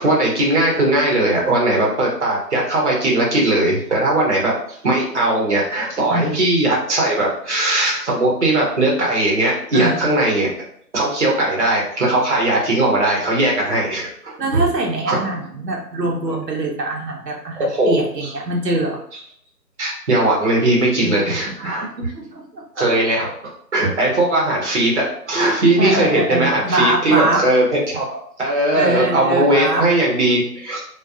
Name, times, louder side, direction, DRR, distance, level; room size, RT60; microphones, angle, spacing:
voice 1, 0.0-10.5 10.9-14.6 15.1-15.2 17.5-18.0 19.8-21.9 22.8-23.3 23.7-28.0 28.4-30.8, right 1 dB, 45° right, -3 dB, 0.8 m, -19 dB
voice 2, 9.7-10.0 14.4-19.0 21.0-21.4 21.6-23.0 25.3-27.5 28.7-29.9, right 2 dB, 75° right, -1 dB, 0.7 m, -23 dB
2.3 x 2.2 x 2.4 m, 0.65 s
figure-of-eight pair, 160°, 49 cm